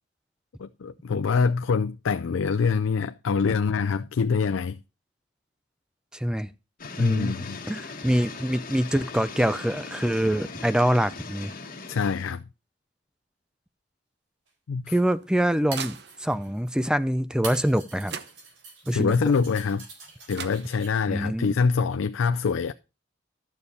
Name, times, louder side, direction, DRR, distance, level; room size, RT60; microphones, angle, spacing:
voice 1, 0.6-4.8 7.0-7.6 11.9-12.4 14.7-14.9 18.9-19.9 20.3-22.7, left 5 dB, 85° left, 0.4 m, -25 dB
voice 2, 6.1-6.5 7.0-7.4 7.7-11.5 14.9-18.1 18.9-19.2 21.1-21.6, equal, 5° right, 0.4 m, -25 dB
sound 1, 6.8-12.3, left 4 dB, 45° left, 1.6 m, -40 dB
sound 2, 14.5-14.6 15.5-16.8 17.4-20.9, right 4 dB, 75° right, 4.2 m, -43 dB
sound 3, 14.9-16.5 17.7-17.8 18.1-18.9 20.0-20.1 20.3-21.2, right 7 dB, 60° right, 0.8 m, -41 dB
11.5 x 6.9 x 4.2 m
head